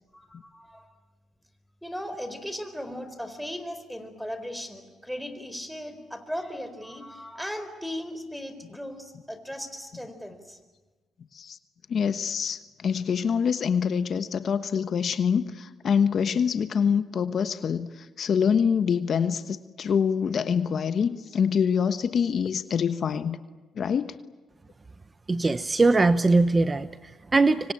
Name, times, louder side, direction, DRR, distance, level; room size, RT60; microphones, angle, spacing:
voice 1, 0.1-0.9 1.8-10.6, equal, ahead, 10 dB, 4.3 m, -37 dB
voice 2, 11.9-17.9 18.2-23.4 23.8-24.1, left 7 dB, 55° left, 11 dB, 1.2 m, -25 dB
voice 3, 25.3-27.7, right 3 dB, 25° right, 13 dB, 0.8 m, -21 dB
25.5 x 25.0 x 8.8 m, 1.3 s
cardioid pair, 90°, 0 cm